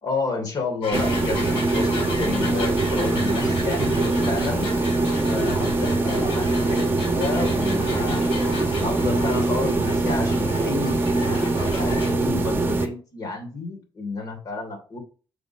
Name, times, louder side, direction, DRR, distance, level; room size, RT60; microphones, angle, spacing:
voice 1, 0.0-4.7 5.3-8.5 8.8-15.0, left 3 dB, 45° left, 2 dB, 3.1 m, -31 dB
sound 1, 0.8-12.1, left 3 dB, 80° left, 4.3 m, -35 dB
sound 2, 0.9-12.9, right 2 dB, 25° right, 1.1 m, -23 dB
6.9 x 4.0 x 5.8 m, 0.38 s
cardioid pair, 110°, 9 cm